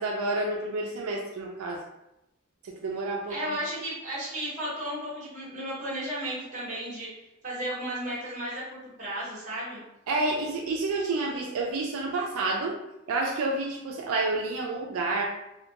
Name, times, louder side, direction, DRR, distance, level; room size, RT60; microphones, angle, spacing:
voice 1, 0.0-1.8 2.6-3.6 10.1-12.8 13.1-15.2, right 2 dB, 85° right, 0 dB, 0.4 m, -29 dB
voice 2, 3.3-7.1 7.4-9.8, right 1 dB, 35° right, -8 dB, 1.0 m, -34 dB
2.2 x 2.2 x 2.8 m, 0.88 s
head